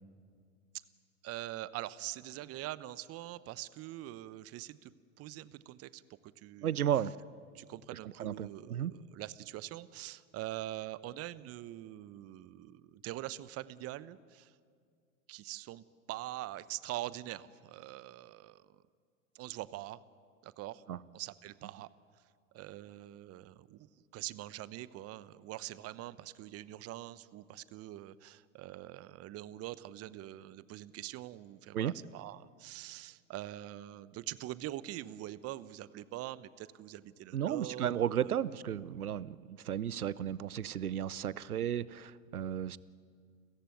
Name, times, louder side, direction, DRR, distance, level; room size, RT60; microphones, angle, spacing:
voice 1, 1.2-4.9 5.2-6.9 7.5-14.6 15.3-18.8 19.3-20.0 20.4-20.8 21.1-21.9 22.5-38.3, right 15 dB, 35° right, 17 dB, 0.9 m, -44 dB
voice 2, 6.6-7.1 8.2-8.9 20.9-21.0 31.7-31.9 37.3-42.8, right 10 dB, 90° right, 20 dB, 0.7 m, -34 dB
30.0 x 14.5 x 9.3 m, 2.1 s
hypercardioid pair, 95°, 43 cm